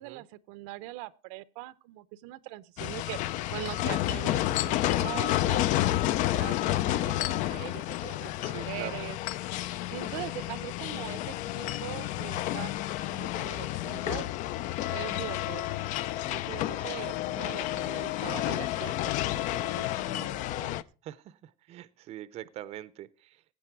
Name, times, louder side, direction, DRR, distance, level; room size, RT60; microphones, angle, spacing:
voice 1, 0.0-3.2 3.5-9.2 9.9-14.3 14.9-15.7 16.3-20.8, right 18 dB, 75° right, 0.7 m, -42 dB
sound 1, 2.8-20.8, left 15 dB, 50° left, 0.5 m, -30 dB
voice 2, 8.4-9.0 16.8-17.0 21.0-23.4, right 13 dB, 40° right, 0.6 m, -43 dB
16.0 x 8.8 x 4.6 m
cardioid pair, 155°, 17 cm